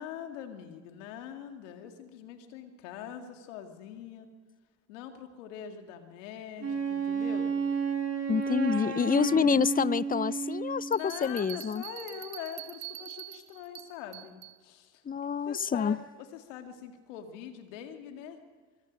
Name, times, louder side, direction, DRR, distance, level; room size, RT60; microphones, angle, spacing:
voice 1, 0.0-4.3 4.9-7.5 8.7-9.7 10.9-15.0 15.5-18.4, left 8 dB, 90° left, 6 dB, 2.0 m, -43 dB
Wind instrument woodwind instrument, 6.6-11.0, right 5 dB, 45° right, 3.9 m, -31 dB
voice 2, 8.3-11.8 15.1-16.0, left 7 dB, 25° left, 21 dB, 0.6 m, -27 dB
Bell, 10.9-14.6, right 16 dB, 75° right, 1.4 m, -45 dB
24.0 x 23.0 x 5.2 m, 1.5 s
hypercardioid pair, 50°, 37 cm